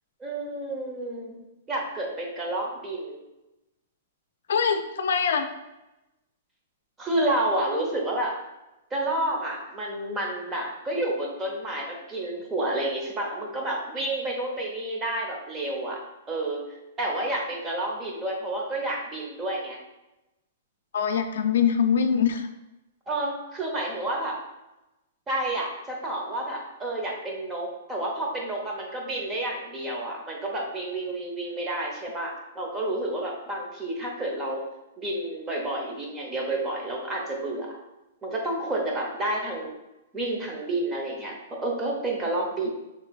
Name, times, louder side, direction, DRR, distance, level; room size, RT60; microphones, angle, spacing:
voice 1, 0.2-1.4 1.7-3.2 7.0-8.3 8.9-16.0 16.3-19.8 23.1-24.4 25.3-34.6 35.0-37.8 38.2-39.7 40.1-42.7, right 1 dB, 15° right, -1 dB, 1.0 m, -30 dB
voice 2, 4.5-5.5 20.9-22.5, left 7 dB, 75° left, 7 dB, 0.4 m, -23 dB
6.5 x 3.3 x 2.4 m, 0.97 s
hypercardioid pair, 145°, 0 cm